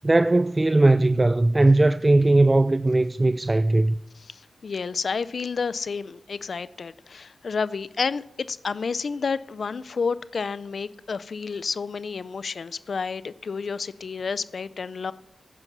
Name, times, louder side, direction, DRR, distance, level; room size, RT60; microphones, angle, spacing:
voice 1, 0.0-3.9, right 2 dB, 30° right, 0.3 m, -19 dB
voice 2, 4.1-15.1, left 5 dB, 75° left, 0.4 m, -30 dB
10.5 x 9.7 x 6.1 m
cardioid pair, 50°, 0 cm